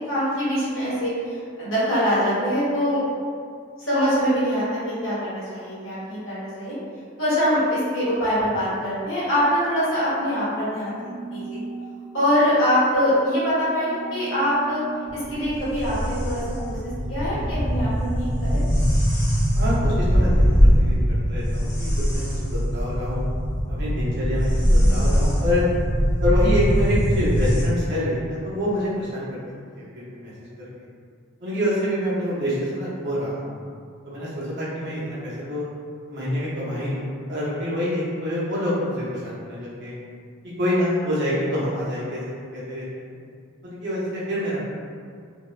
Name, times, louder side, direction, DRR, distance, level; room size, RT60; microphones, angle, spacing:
voice 1, 0.1-3.0 3.8-6.8 7.2-11.0 11.3-11.6 12.1-14.8 15.1-17.9 18.2-18.6, equal, 70° left, -11 dB, 1.1 m, -23 dB
sound 1, 10.2-18.8, right 3 dB, 10° left, 0.6 m, -39 dB
sound 2, 15.1-27.6, equal, 50° left, 1.0 m, -21 dB
voice 2, 19.5-23.3 23.7-25.6 26.2-29.4 29.7-30.5 31.4-33.6 34.0-35.7 36.0-40.0 40.4-42.2 42.5-43.2 43.6-44.6, equal, 55° right, -8 dB, 0.7 m, -27 dB
2.7 x 2.1 x 2.4 m, 2.2 s
head